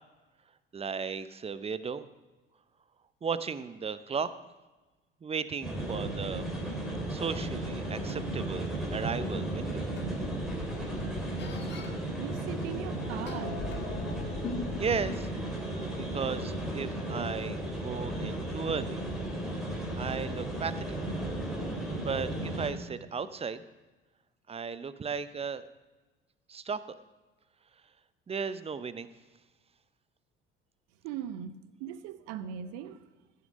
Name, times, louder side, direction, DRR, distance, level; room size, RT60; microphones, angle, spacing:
voice 1, 0.7-2.1 3.2-4.3 5.2-6.5 7.1-9.9 14.8-15.3 15.9-19.0 20.0-21.0 22.0-23.6 24.5-25.6 26.5-26.8 28.3-29.1, right 5 dB, 20° right, 15 dB, 0.6 m, -35 dB
sound 1, 5.6-22.7, right 1 dB, ahead, 3.4 m, -35 dB
sound 2, 8.1-8.2 9.5-9.6 10.0-11.9 12.8-15.4, left 4 dB, 40° left, 1.5 m, -40 dB
voice 2, 12.1-13.9 31.0-33.1, right 9 dB, 60° right, 14 dB, 0.8 m, -40 dB
15.5 x 6.7 x 5.2 m, 1.2 s
figure-of-eight pair, 55°, 29 cm